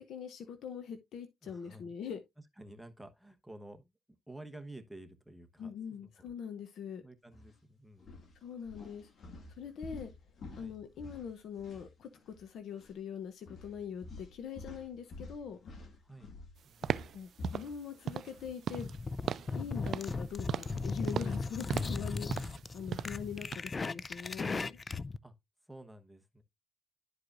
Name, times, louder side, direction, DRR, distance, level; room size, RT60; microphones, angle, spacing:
voice 1, 0.0-2.2 5.6-7.0 8.4-9.1 9.6-10.1 10.6-15.6 17.1-18.9 19.5-22.4 22.7-24.8, left 7 dB, 70° left, 0.8 m, -42 dB
voice 2, 1.4-1.9 2.6-3.9 4.3-6.1 7.0-8.3 10.6-10.7 16.0-16.3 16.6-17.1 25.2-25.3 25.6-26.4, right 1 dB, 5° right, 1.1 m, -52 dB
sound 1, 7.3-7.5 8.0-12.5 12.7-12.9 13.5-18.6 18.9-22.3, left 2 dB, 55° left, 2.1 m, -50 dB
sound 2, 16.8-17.2 17.4-17.7 18.1-18.4 18.6-19.0 19.3-19.6 19.9-20.2 20.5-20.8 21.1-21.4 21.7-22.0 22.3-22.6 22.9-23.2 23.5-23.6, right 8 dB, 60° right, 0.3 m, -36 dB
sound 3, 18.7-25.2, left 3 dB, 30° left, 0.4 m, -37 dB
11.0 x 4.7 x 2.5 m
cardioid pair, 90°, 0 cm